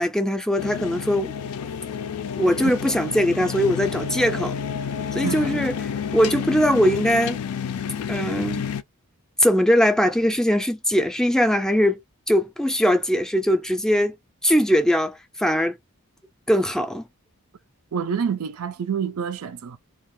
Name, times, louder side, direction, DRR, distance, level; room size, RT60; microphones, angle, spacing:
voice 1, 0.0-1.3 2.4-4.6 5.1-7.4 8.1-8.7 9.4-12.0 12.3-14.2 14.4-15.8 16.5-17.0, equal, 5° left, 0.4 m, -21 dB
sound 1, 0.6-8.8, left 7 dB, 80° left, 0.4 m, -30 dB
voice 2, 5.2-5.6 17.9-19.8, right 7 dB, 75° right, 0.4 m, -27 dB
2.4 x 2.3 x 3.6 m
head